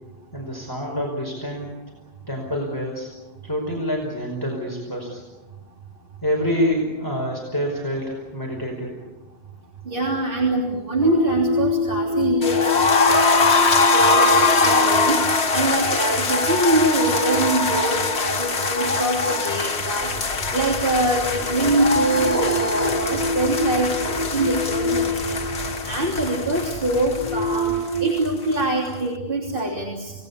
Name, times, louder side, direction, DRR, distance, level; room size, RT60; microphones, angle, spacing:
voice 1, 0.3-1.7 2.3-3.1 3.4-5.2 6.2-8.9, equal, 20° left, -1 dB, 5.2 m, -26 dB
voice 2, 9.9-13.5 13.9-14.4 14.6-15.2 15.5-25.6 25.8-30.1, right 1 dB, 55° right, -1 dB, 3.5 m, -24 dB
sound 1, 11.0-26.1 26.8-28.1, equal, 20° right, 7.4 m, -27 dB
sound 2, 12.4-28.3 28.5-28.6 28.9-29.0, left 4 dB, 80° left, 1.8 m, -22 dB
sound 3, 20.0-27.8, left 2 dB, 60° left, 1.6 m, -37 dB
29.0 x 19.5 x 8.5 m, 1.2 s
omnidirectional pair, 1.1 m